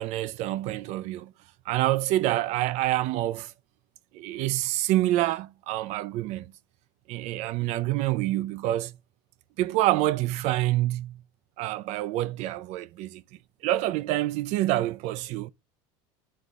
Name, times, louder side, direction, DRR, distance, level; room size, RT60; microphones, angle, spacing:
voice 1, 0.0-1.3 1.7-3.5 4.1-6.5 7.1-8.9 9.6-11.2 11.6-13.2 13.6-15.5, right 15 dB, 60° right, 0.5 m, -27 dB
11.0 x 4.0 x 2.4 m
supercardioid pair, 105°, 13 cm